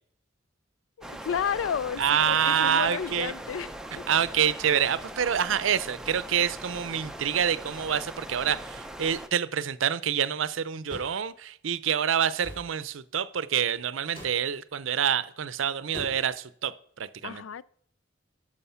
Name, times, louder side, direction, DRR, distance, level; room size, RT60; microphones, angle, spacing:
voice 1, 1.0-4.0 17.2-17.6, left 7 dB, 85° left, 0.4 m, -32 dB
sound 1, 1.0-9.3, right 1 dB, 5° right, 0.6 m, -41 dB
voice 2, 2.0-3.3 4.1-16.7 17.0-17.4, right 8 dB, 85° right, 0.5 m, -27 dB
sound 2, 10.9-11.2 12.4-12.7 14.1-14.4 15.9-16.4, right 1 dB, 30° left, 3.9 m, -41 dB
12.5 x 6.4 x 5.6 m
head